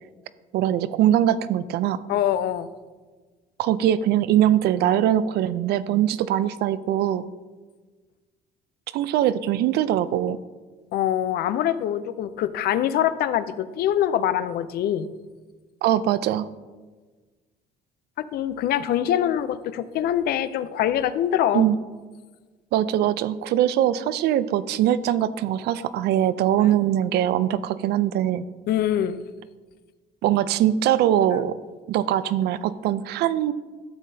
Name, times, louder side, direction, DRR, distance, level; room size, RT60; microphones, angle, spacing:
voice 1, 0.5-2.0 3.6-7.3 8.9-10.4 15.8-16.5 21.5-21.8 22.7-28.4 30.2-31.5 31.9-33.5, right 11 dB, 75° right, 15 dB, 0.4 m, -22 dB
voice 2, 2.1-2.7 10.9-15.1 18.2-21.6 28.7-29.2, left 11 dB, 65° left, 14 dB, 0.5 m, -24 dB
12.0 x 7.4 x 2.7 m, 1.3 s
cardioid pair, 110°, 17 cm